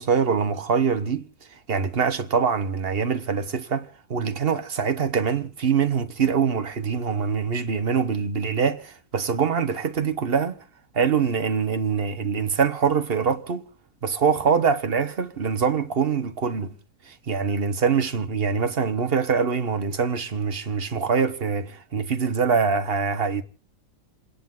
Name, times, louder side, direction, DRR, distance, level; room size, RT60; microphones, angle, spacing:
voice 1, 0.0-10.6 10.9-13.6 14.0-16.7 17.0-23.4, right 6 dB, 40° right, 1.2 m, -24 dB
29.0 x 10.0 x 3.8 m
omnidirectional pair, 1.6 m